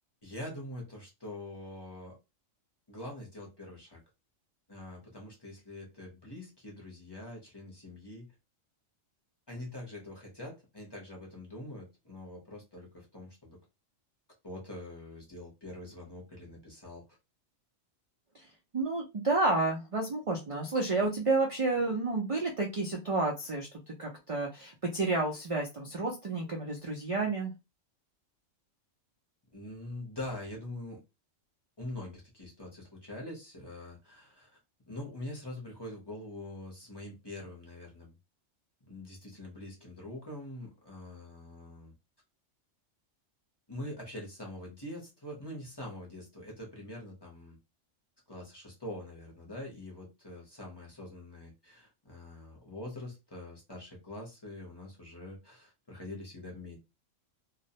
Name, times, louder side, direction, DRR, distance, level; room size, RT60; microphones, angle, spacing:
voice 1, 0.2-2.2 2.9-4.0 4.7-8.3 9.5-13.6 14.4-17.0 29.5-31.0 31.8-34.6 34.9-38.1 38.8-41.9 43.7-47.6 48.3-56.8, left 1 dB, 25° left, -2 dB, 0.7 m, -44 dB
voice 2, 18.7-27.5, right 3 dB, 65° right, 0 dB, 0.3 m, -30 dB
2.3 x 2.0 x 2.7 m, 0.25 s
omnidirectional pair, 1.3 m